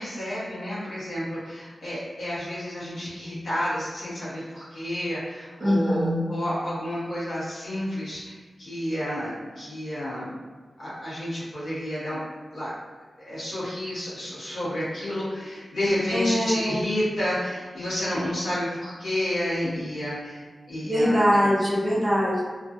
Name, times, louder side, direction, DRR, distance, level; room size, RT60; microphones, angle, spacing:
voice 1, 0.0-10.3 10.8-12.2 12.5-12.7 13.2-21.2, equal, 65° left, -10 dB, 1.0 m, -30 dB
voice 2, 5.6-6.2 16.1-16.8 20.8-22.4, equal, 15° right, -7 dB, 0.6 m, -22 dB
2.5 x 2.3 x 2.4 m, 1.4 s
wide cardioid pair, 160°, 0 cm